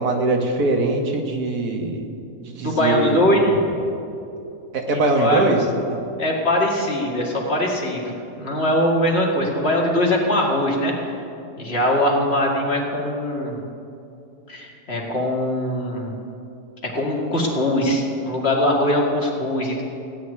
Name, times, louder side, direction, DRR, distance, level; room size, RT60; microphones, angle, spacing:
voice 1, 0.0-2.0 2.4-3.3 4.7-5.6 5.9-6.0, right 2 dB, 90° right, 3 dB, 2.0 m, -22 dB
voice 2, 2.6-3.6 5.1-5.4 6.2-8.0 8.4-11.2 11.6-13.6 14.5-16.1 16.8-19.8, left 1 dB, 45° left, -2 dB, 2.4 m, -21 dB
16.5 x 6.4 x 9.7 m, 2.7 s
omnidirectional pair, 1.6 m